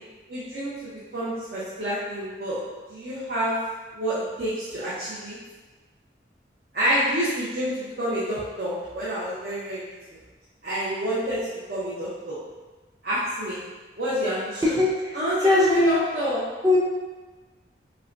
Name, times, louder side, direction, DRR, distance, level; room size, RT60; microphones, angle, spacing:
voice 1, 0.3-2.6 2.9-3.6 3.9-5.3 6.7-9.9 10.6-12.4 13.0-13.6 14.0-14.8 15.1-16.4, equal, 55° right, -10 dB, 0.8 m, -28 dB
voice 2, 14.6-16.0 16.6-16.8, left 2 dB, 20° right, -4 dB, 0.6 m, -20 dB
5.4 x 2.2 x 2.6 m, 1.3 s
head